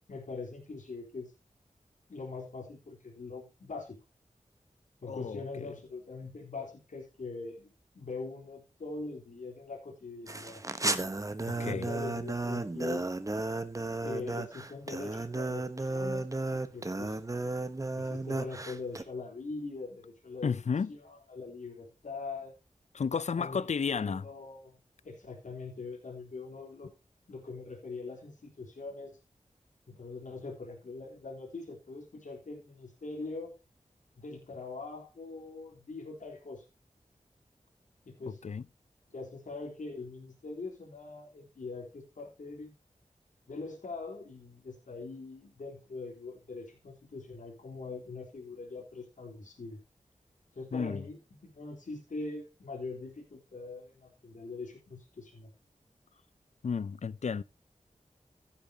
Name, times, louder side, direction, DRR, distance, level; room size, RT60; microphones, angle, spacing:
voice 1, 0.1-1.3 2.1-4.0 5.0-10.6 11.4-13.1 14.0-17.2 18.0-20.6 20.9-22.5 23.4-24.8 25.0-26.9 27.3-29.2 29.9-33.6 34.2-36.6 38.1-38.4 39.1-42.7 43.5-49.8 50.5-55.5, left 3 dB, 80° left, 3.8 m, -42 dB
voice 2, 5.1-5.7 11.5-11.9 20.4-20.9 22.9-24.3 38.4-38.6 50.7-51.0 56.6-57.4, left 6 dB, 65° left, 0.5 m, -32 dB
sound 1, 10.3-19.0, right 2 dB, 25° right, 1.1 m, -34 dB
15.5 x 8.7 x 2.9 m
wide cardioid pair, 90°, 13 cm